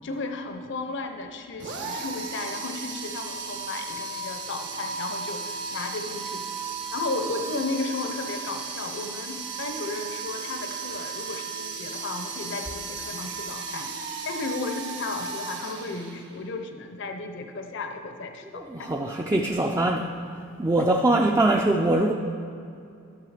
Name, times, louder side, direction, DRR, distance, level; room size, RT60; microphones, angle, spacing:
voice 1, 0.0-6.4 6.9-13.9 14.2-18.9 20.8-20.9, left 3 dB, 65° left, 6 dB, 0.7 m, -34 dB
sound 1, 1.6-16.5, right 4 dB, 65° right, 1.2 m, -35 dB
voice 2, 18.5-20.1 20.6-22.1, right 2 dB, 15° right, 1 dB, 0.4 m, -22 dB
12.5 x 6.7 x 4.9 m, 2.5 s
head